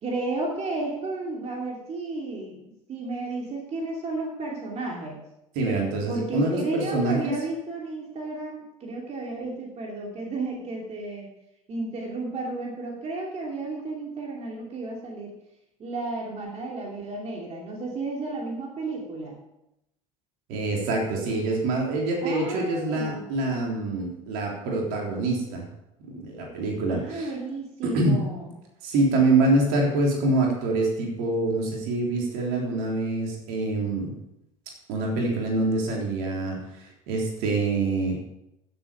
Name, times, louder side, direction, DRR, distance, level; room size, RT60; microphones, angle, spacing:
voice 1, 0.0-5.3 6.1-11.3 11.7-15.3 15.8-19.4 22.2-23.3 26.9-28.5, right 3 dB, 40° right, -1 dB, 3.0 m, -33 dB
voice 2, 5.6-7.3 20.5-25.7 26.1-27.3 27.8-28.1 28.8-34.1 34.9-38.2, right 2 dB, 60° right, -1 dB, 3.6 m, -25 dB
15.0 x 7.9 x 5.1 m, 0.85 s
figure-of-eight pair, 65°, 17 cm